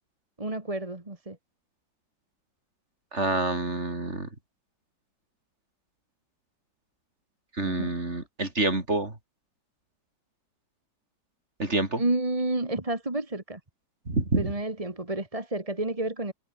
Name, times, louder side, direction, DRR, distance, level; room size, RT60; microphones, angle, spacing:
voice 1, 0.4-1.4 7.6-8.0 12.0-13.6 14.4-16.3, right 2 dB, 20° right, 2.3 m, -30 dB
voice 2, 3.1-4.3 7.6-9.1 11.6-12.0 14.1-14.5, right 2 dB, 35° right, 4.7 m, -27 dB
omnidirectional pair, 2.1 m